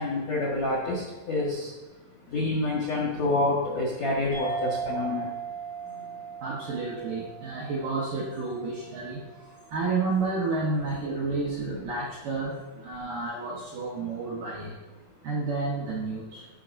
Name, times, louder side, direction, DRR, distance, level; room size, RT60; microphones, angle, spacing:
voice 1, 0.0-6.4 9.5-9.7 15.1-15.3, left 2 dB, 65° left, -5 dB, 1.7 m, -29 dB
sound 1, 4.3-9.2, right 5 dB, 85° right, 6.9 m, -37 dB
voice 2, 6.4-14.8 15.2-16.5, right 3 dB, 70° right, -4 dB, 2.1 m, -31 dB
15.0 x 11.0 x 2.7 m, 1.2 s
omnidirectional pair, 5.8 m